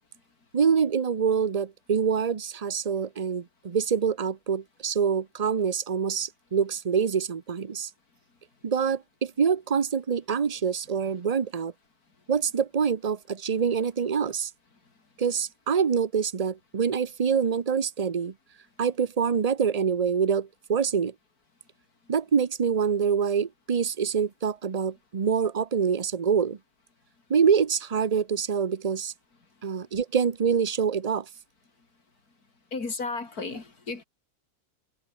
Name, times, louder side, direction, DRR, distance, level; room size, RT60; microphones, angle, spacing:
voice 1, 0.5-7.9 8.6-11.7 12.3-14.5 15.2-18.3 18.8-21.1 22.1-26.6 27.3-29.1 29.6-31.3, right 6 dB, 30° right, 0.7 m, -25 dB
voice 2, 32.7-34.0, left 4 dB, 65° left, 3.7 m, -33 dB
omnidirectional pair, 1.7 m